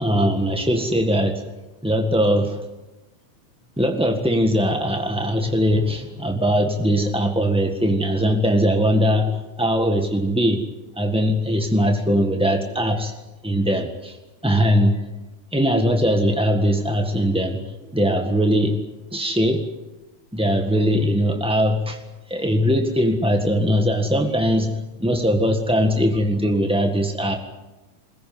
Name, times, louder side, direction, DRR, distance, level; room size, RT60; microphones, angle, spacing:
voice 1, 0.0-1.4 1.8-2.6 3.8-10.6 10.9-13.1 13.4-14.2 14.4-15.0 15.5-18.8 19.1-19.6 20.3-22.0 22.3-27.4, equal, 5° right, 4 dB, 0.6 m, -20 dB
22.5 x 20.0 x 9.6 m, 1.1 s
omnidirectional pair, 3.5 m